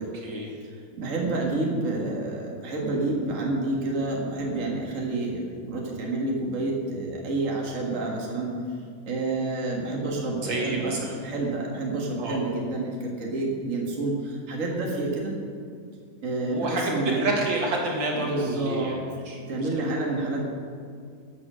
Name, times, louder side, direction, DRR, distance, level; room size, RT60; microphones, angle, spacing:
voice 1, 0.6-8.5 9.0-15.3 16.2-17.3 18.2-19.0 19.5-20.4, right 2 dB, 85° right, -2 dB, 0.7 m, -29 dB
voice 2, 10.4-11.1 12.2-12.4 16.4-16.9 17.2-19.7, right 2 dB, 50° right, -1 dB, 1.4 m, -29 dB
14.5 x 6.8 x 6.2 m, 2.3 s
omnidirectional pair, 4.3 m